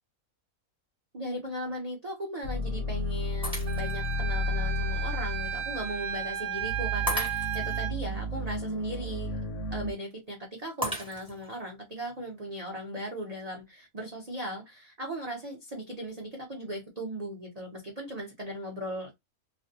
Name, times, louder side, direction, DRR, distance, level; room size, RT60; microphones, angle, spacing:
voice 1, 1.1-9.4 9.7-19.1, right 1 dB, 45° right, 0.5 m, -38 dB
sound 1, 2.4-9.9, left 1 dB, 65° left, 0.8 m, -33 dB
Shatter, 3.4-4.1 4.7-4.8 7.1-7.8 10.8-11.6, equal, 5° right, 1.0 m, -34 dB
Wind instrument woodwind instrument, 3.7-7.9, right 11 dB, 85° right, 1.2 m, -34 dB
2.4 x 2.1 x 2.6 m
omnidirectional pair, 1.5 m